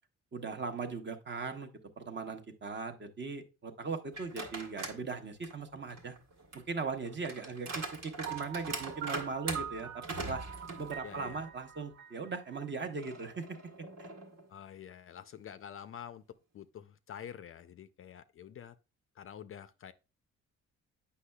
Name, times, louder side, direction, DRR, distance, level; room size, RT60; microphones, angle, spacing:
voice 1, 0.3-1.7 2.0-6.2 6.7-10.4 10.8-13.6 14.0-14.1, right 4 dB, 35° right, 0.9 m, -39 dB
sound 1, 4.1-5.0 5.4-11.5 11.9-12.0 13.0-14.5, right 3 dB, 60° right, 1.4 m, -42 dB
Piano, 8.3-13.1, right 9 dB, 85° right, 0.6 m, -45 dB
voice 2, 11.0-11.4 14.5-16.2 16.5-18.7 19.2-19.9, left 9 dB, 45° left, 0.4 m, -47 dB
8.3 x 5.5 x 2.2 m
cardioid pair, 90°, 30 cm